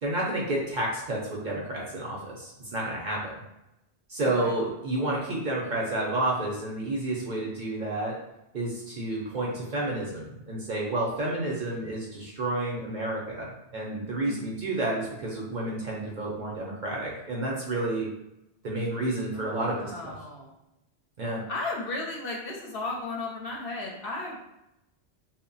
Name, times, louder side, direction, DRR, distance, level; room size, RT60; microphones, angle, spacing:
voice 1, 0.0-3.3 4.1-8.1 8.5-13.5 13.7-18.1 18.6-20.1 21.2-21.4, right 2 dB, 50° right, -4 dB, 0.6 m, -30 dB
voice 2, 4.2-4.5 14.3-14.6 19.3-20.5 21.5-24.4, left 3 dB, 65° left, 0 dB, 0.7 m, -35 dB
2.1 x 2.1 x 3.8 m, 0.89 s
omnidirectional pair, 1.1 m